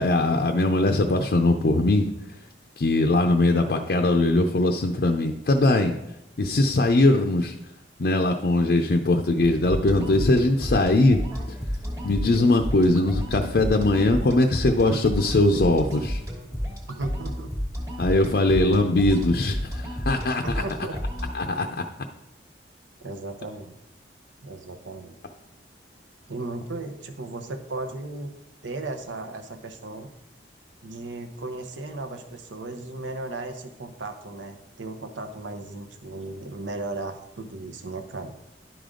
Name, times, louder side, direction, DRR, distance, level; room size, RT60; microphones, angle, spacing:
voice 1, 0.0-2.1 2.8-5.9 6.4-7.5 8.0-11.2 12.0-16.2 18.0-20.6 21.3-21.8, left 2 dB, 55° left, 4 dB, 0.5 m, -21 dB
sound 1, 9.4-21.4, equal, 15° right, 1.2 m, -31 dB
voice 2, 16.9-17.5 20.4-21.0 23.0-23.8 24.4-25.2 26.3-28.3 28.6-30.1 30.8-38.3, right 2 dB, 90° right, 7 dB, 0.9 m, -35 dB
11.0 x 5.1 x 3.8 m, 0.88 s
head